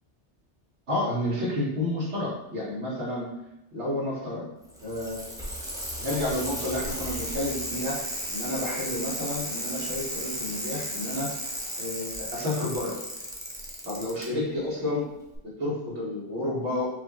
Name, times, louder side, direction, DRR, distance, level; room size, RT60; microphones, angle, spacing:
voice 1, 0.9-3.3 3.7-4.5 4.8-5.3 6.0-11.3 11.8-13.0 13.8-15.0 15.4-16.9, left 1 dB, 75° right, -7 dB, 1.7 m, -30 dB
Bicycle, 4.6-14.2 15.3-15.4, equal, 5° right, 0.5 m, -34 dB
4.7 x 2.6 x 3.0 m, 0.88 s
omnidirectional pair, 1.2 m